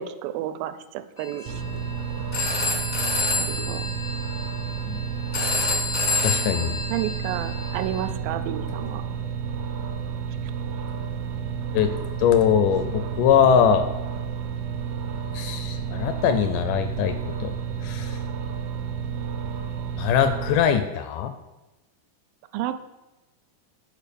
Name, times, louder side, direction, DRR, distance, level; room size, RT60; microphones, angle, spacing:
voice 1, 0.0-1.6 3.4-3.8 6.9-9.0 10.4-10.5 22.5-22.7, right 12 dB, 90° right, 10 dB, 2.3 m, -31 dB
Telephone, 1.2-8.1, left 3 dB, 60° left, 0.8 m, -29 dB
sound 1, 1.4-20.6, right 6 dB, 75° right, 1.6 m, -31 dB
voice 2, 6.2-6.8 11.7-13.9 15.3-17.5 17.8-18.2 20.0-21.3, left 8 dB, 80° left, 9 dB, 1.9 m, -22 dB
6.7 x 4.9 x 6.8 m, 1.1 s
omnidirectional pair, 4.0 m